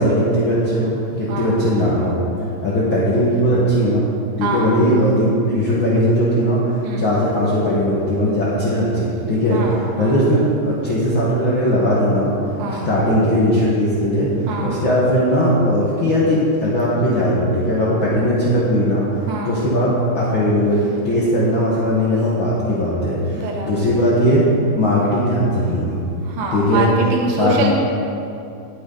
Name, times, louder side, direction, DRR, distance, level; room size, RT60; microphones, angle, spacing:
voice 1, 0.0-2.2 2.6-4.1 4.4-12.3 12.7-19.0 19.4-24.5 24.8-26.0 26.5-26.9 27.4-27.7, equal, 45° left, -8 dB, 2.2 m, -18 dB
voice 2, 1.3-1.6 4.4-4.8 6.8-7.1 9.5-10.2 12.6-12.9 14.5-14.8 19.3-19.6 23.3-24.0 26.2-27.7, right 2 dB, 55° right, -1 dB, 1.8 m, -25 dB
19.0 x 8.7 x 4.1 m, 2.6 s
omnidirectional pair, 3.7 m